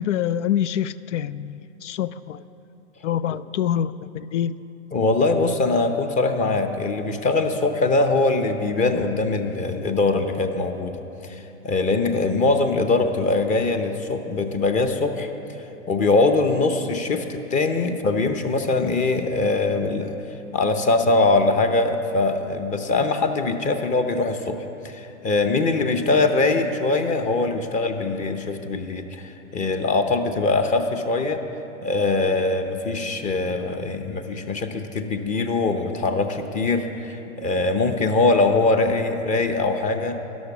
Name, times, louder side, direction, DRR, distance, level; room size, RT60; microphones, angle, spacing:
voice 1, 0.0-2.4 3.0-4.5, left 10 dB, 75° left, 16 dB, 0.5 m, -26 dB
voice 2, 4.9-15.3 15.9-20.1 20.5-24.6 24.8-31.4 31.8-40.2, left 3 dB, 20° left, 6 dB, 0.7 m, -22 dB
12.5 x 11.5 x 6.1 m, 3.0 s
hypercardioid pair, 130°, 37 cm